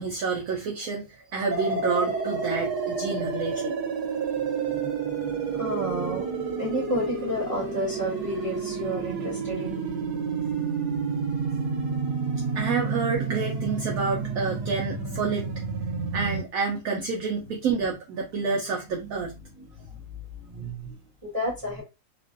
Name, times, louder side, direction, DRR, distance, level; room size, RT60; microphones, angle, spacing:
voice 1, 0.0-3.8 12.5-15.5 16.1-19.4, right 5 dB, 70° right, 1.0 m, -28 dB
sound 1, 1.5-16.4, right 5 dB, 85° right, 1.3 m, -30 dB
voice 2, 4.3-10.0 10.4-10.5 11.6-11.7 12.0-12.4 19.0-19.2 19.5-21.8, equal, 20° right, 1.5 m, -33 dB
3.1 x 2.4 x 2.5 m
omnidirectional pair, 1.7 m